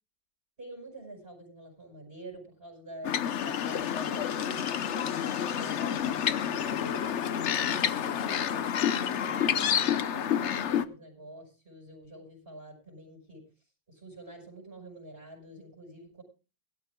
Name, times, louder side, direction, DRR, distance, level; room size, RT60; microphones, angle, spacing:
voice 1, 0.6-7.0 7.6-13.4 13.9-16.2, right 2 dB, 30° right, 1 dB, 5.5 m, -47 dB
sound 1, 3.0-10.8, left 9 dB, 60° left, 0.7 m, -29 dB
21.5 x 12.5 x 2.3 m, 0.32 s
omnidirectional pair, 2.0 m